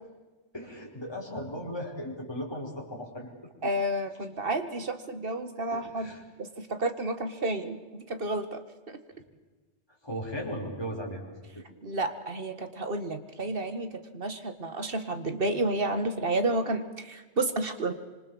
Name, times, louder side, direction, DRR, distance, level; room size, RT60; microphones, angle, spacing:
voice 1, 0.5-3.3 5.7-6.2 10.0-11.2, equal, 20° left, -3 dB, 4.9 m, -36 dB
voice 2, 3.6-6.1 6.4-9.0 11.8-17.9, right 2 dB, 50° right, 9 dB, 2.0 m, -31 dB
26.0 x 25.0 x 7.2 m, 1.3 s
omnidirectional pair, 1.2 m